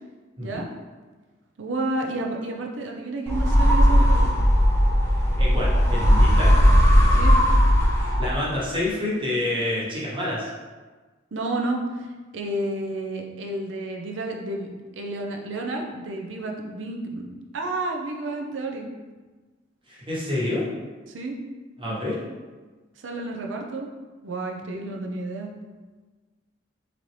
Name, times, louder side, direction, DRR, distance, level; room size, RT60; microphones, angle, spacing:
voice 1, 0.4-0.7 1.6-4.3 7.1-7.4 11.3-12.1 12.3-14.7 14.9-17.3 17.5-18.9 21.1-21.4 21.9-22.0 23.0-23.9 24.2-25.5, right 2 dB, 85° right, 1 dB, 0.6 m, -30 dB
sound 1, 3.3-8.6, equal, 15° left, 0.6 m, -17 dB
voice 2, 5.4-6.6 8.0-10.5 19.9-20.6 21.8-22.2, left 1 dB, 30° right, -6 dB, 1.1 m, -28 dB
3.9 x 2.9 x 3.2 m, 1.3 s
head